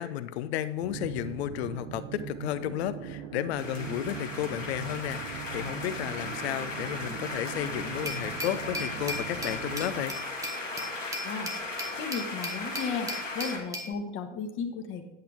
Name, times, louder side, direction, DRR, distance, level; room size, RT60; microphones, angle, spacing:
voice 1, 0.0-10.2, left 12 dB, 55° left, 13 dB, 0.8 m, -33 dB
sound 1, 0.8-10.1, right 9 dB, 35° right, 0.9 m, -40 dB
sound 2, 3.6-13.6, left 2 dB, 90° left, 1.9 m, -37 dB
Glass, 8.1-13.9, equal, 10° right, 1.6 m, -38 dB
voice 2, 12.0-13.1 13.3-15.1, left 5 dB, 35° left, 4 dB, 1.3 m, -34 dB
9.8 x 8.6 x 3.5 m, 0.89 s
figure-of-eight pair, 95°, 37 cm